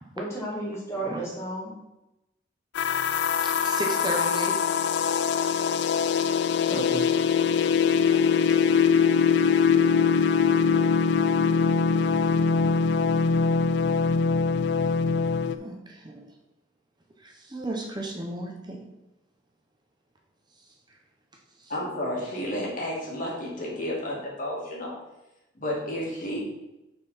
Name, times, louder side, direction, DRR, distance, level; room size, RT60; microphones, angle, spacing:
voice 1, 0.2-1.8 6.7-7.1, right 1 dB, 15° left, -5 dB, 1.2 m, -33 dB
voice 2, 0.9-1.3 3.4-4.6 5.0-5.1 8.1-8.2 12.3-12.4 15.5-16.3 17.2-18.8 20.5-21.0 21.5-21.7, right 1 dB, 25° right, 1 dB, 0.9 m, -35 dB
sound 1, 2.7-15.6, left 6 dB, 65° left, 0.3 m, -22 dB
voice 3, 21.7-25.0 25.5-26.4, left 1 dB, 45° left, -3 dB, 2.3 m, -31 dB
6.2 x 4.5 x 5.7 m, 0.93 s
head